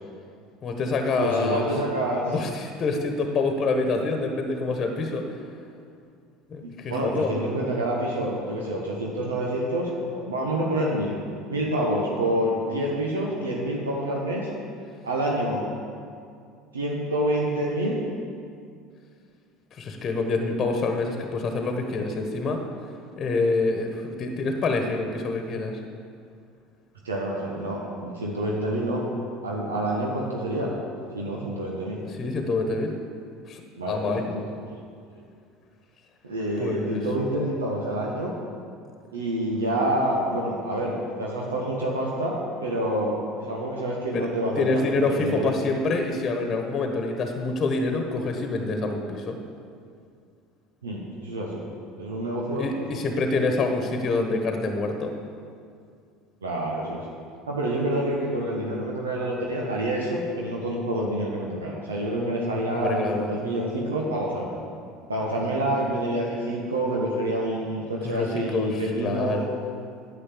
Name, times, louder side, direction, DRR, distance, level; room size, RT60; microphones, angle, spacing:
voice 1, 0.6-1.6 2.3-5.2 6.5-7.3 19.7-22.6 23.2-25.8 32.2-32.9 33.5-33.6 33.9-34.2 36.6-37.0 44.1-44.3 44.6-49.4 52.6-55.1 62.7-63.3 68.0-69.4, left 3 dB, 40° left, 4 dB, 1.3 m, -26 dB
voice 2, 1.2-2.4 6.6-11.1 11.5-14.5 15.0-15.6 16.7-18.0 27.0-29.1 29.4-30.7 31.1-32.0 33.8-34.6 35.2-35.3 36.2-38.3 39.1-45.6 50.8-51.6 52.0-53.0 56.4-57.1 57.5-64.6 65.1-69.5, right 1 dB, 80° right, -2 dB, 1.2 m, -27 dB
10.0 x 7.5 x 7.5 m, 2.3 s
figure-of-eight pair, 65°, 0 cm